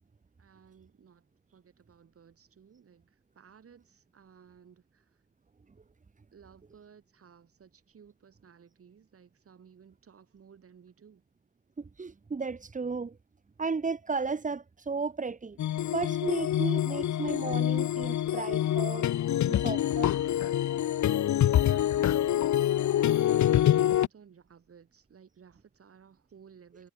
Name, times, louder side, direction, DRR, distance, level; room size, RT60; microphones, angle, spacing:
voice 1, 0.4-5.2 6.3-11.2 21.7-22.2 23.5-26.9, right 7 dB, 50° right, 5.4 m, -57 dB
voice 2, 11.8-13.2 13.6-15.6 15.9-19.1 19.5-20.1, right 4 dB, 25° right, 2.3 m, -34 dB
sound 1, 15.6-24.1, left 11 dB, 75° left, 0.8 m, -26 dB
wide cardioid pair, 170°, 29 cm